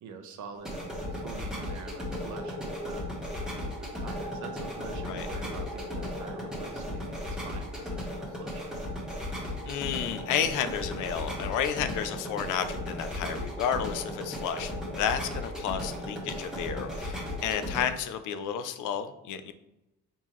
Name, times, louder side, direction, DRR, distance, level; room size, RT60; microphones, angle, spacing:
voice 1, 0.0-3.1 3.5-8.9, right 5 dB, 70° right, 6 dB, 0.7 m, -45 dB
sound 1, 0.5-17.8, left 1 dB, ahead, 1.4 m, -36 dB
voice 2, 9.7-19.5, left 8 dB, 85° left, 10 dB, 0.5 m, -31 dB
4.2 x 3.7 x 3.1 m, 0.91 s
cardioid pair, 90°, 30 cm